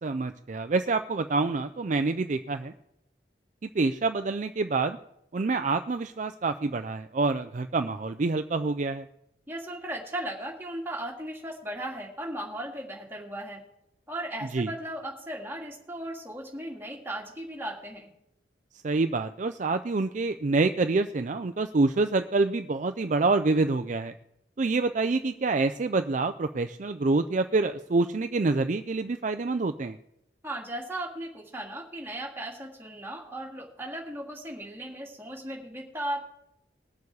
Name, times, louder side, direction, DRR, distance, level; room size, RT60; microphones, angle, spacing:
voice 1, 0.0-2.7 3.7-5.0 5.3-9.0 14.5-14.7 18.8-24.1 24.6-30.0, right 3 dB, 40° right, 8 dB, 0.4 m, -27 dB
voice 2, 9.5-13.6 14.1-18.1 30.4-36.3, right 1 dB, 10° right, -1 dB, 2.1 m, -36 dB
20.5 x 7.1 x 4.8 m, 0.80 s
head